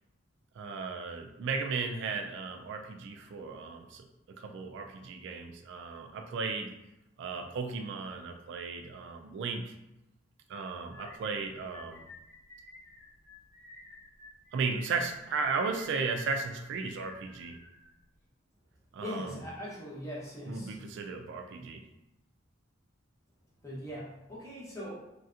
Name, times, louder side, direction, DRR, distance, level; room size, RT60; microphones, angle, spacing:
voice 1, 0.6-6.8 7.2-9.7 10.5-12.1 14.5-17.6 18.9-19.3 20.5-21.8, right 4 dB, 65° right, 4 dB, 0.3 m, -35 dB
sound 1, 10.9-18.3, left 2 dB, 40° left, 0.9 m, -53 dB
voice 2, 19.0-20.8 23.6-25.0, left 1 dB, 15° left, -6 dB, 0.8 m, -40 dB
3.2 x 2.7 x 2.4 m, 0.91 s
head